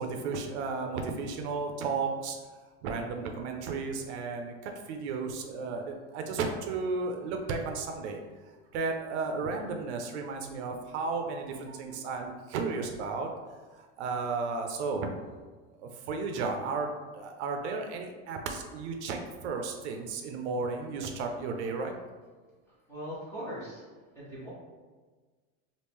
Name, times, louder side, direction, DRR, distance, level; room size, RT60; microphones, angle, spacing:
voice 1, 0.0-2.4 2.8-8.2 8.7-13.3 13.8-15.1 15.8-21.9, right 4 dB, 70° right, 4 dB, 0.5 m, -34 dB
voice 2, 22.9-23.8 24.1-24.5, equal, 10° left, -9 dB, 0.8 m, -39 dB
3.1 x 2.5 x 3.4 m, 1.4 s
supercardioid pair, 180°, 35 cm